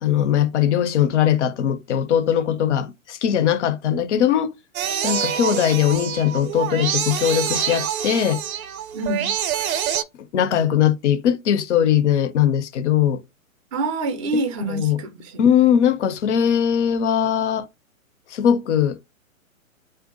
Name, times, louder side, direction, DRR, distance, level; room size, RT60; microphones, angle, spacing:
voice 1, 0.0-4.5 5.0-8.4 10.3-13.2 14.3-14.4 14.7-15.0 15.4-17.7 18.3-19.0, left 9 dB, 55° left, 0.6 m, -20 dB
sound 1, 4.7-10.0, right 9 dB, 80° right, 0.5 m, -26 dB
voice 2, 8.9-9.4 13.7-15.4, right 2 dB, 25° right, 0.5 m, -26 dB
2.5 x 2.2 x 3.7 m
figure-of-eight pair, 125°, 42 cm